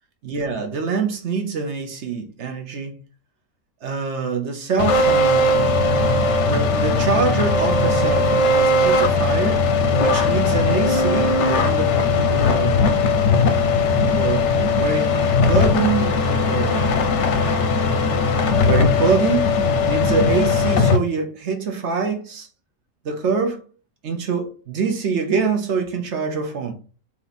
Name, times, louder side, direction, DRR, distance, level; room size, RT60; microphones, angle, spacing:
voice 1, 0.2-2.9 3.8-5.5 6.4-9.6 10.0-12.9 14.0-15.1 15.4-16.9 18.6-19.5 19.8-22.5 23.0-23.6 24.0-26.7, right 5 dB, 55° right, 1.0 m, -25 dB
sound 1, 4.8-21.0, left 3 dB, 60° left, 0.9 m, -18 dB
4.1 x 3.0 x 4.0 m
omnidirectional pair, 1.5 m